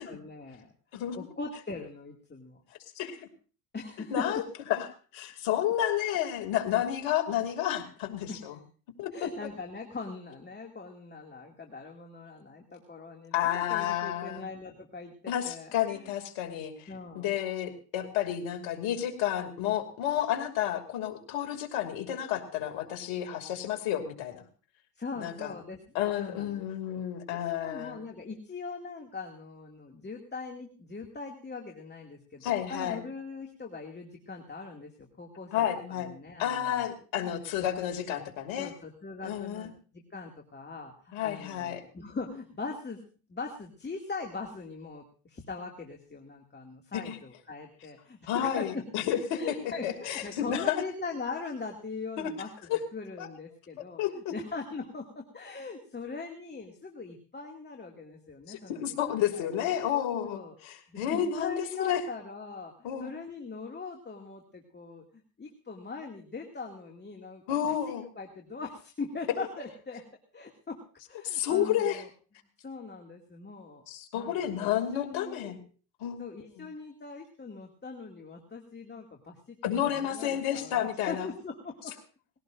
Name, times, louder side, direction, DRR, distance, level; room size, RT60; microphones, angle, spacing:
voice 1, 0.0-2.6 3.7-4.3 8.3-8.4 9.1-16.1 16.9-17.3 25.0-27.0 27.3-36.9 37.6-37.7 38.6-43.0 43.3-49.0 49.3-54.0 54.3-59.7 60.2-60.5 60.9-65.0 65.4-70.0 70.3-70.8 71.1-72.1 72.6-73.8 74.1-75.5 76.2-79.6 79.9-81.9, left 4 dB, 20° left, 2 dB, 2.4 m, -41 dB
voice 2, 2.9-3.3 4.1-4.4 4.7-4.9 5.1-8.6 9.0-9.1 13.3-14.5 15.3-24.4 25.2-25.5 25.9-28.0 32.4-33.0 35.5-36.1 36.4-38.7 39.2-39.7 41.1-41.8 46.9-47.2 48.3-49.4 49.8-50.8 52.2-52.3 52.7-52.8 53.2-53.3 54.0-54.3 58.5-62.0 62.8-63.1 67.5-68.0 71.2-72.0 73.9-75.6 76.0-76.2 76.6-76.7 79.6-81.3, left 10 dB, 65° left, 4 dB, 2.8 m, -31 dB
20.5 x 17.0 x 2.6 m, 0.38 s
hypercardioid pair, 80°, 48 cm